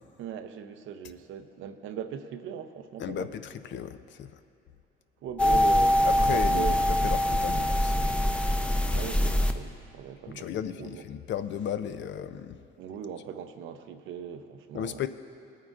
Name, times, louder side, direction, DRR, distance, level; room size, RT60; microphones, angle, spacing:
voice 1, 0.2-3.3 5.2-6.9 8.9-11.0 12.8-15.1, right 8 dB, 85° right, 8 dB, 0.6 m, -39 dB
voice 2, 3.0-4.4 6.0-8.2 10.3-12.6 14.7-15.1, left 9 dB, 65° left, 11 dB, 0.5 m, -35 dB
sound 1, 5.4-9.5, left 1 dB, 5° left, 0.6 m, -24 dB
20.0 x 9.1 x 2.5 m, 2.8 s
cardioid pair, 90°, 20 cm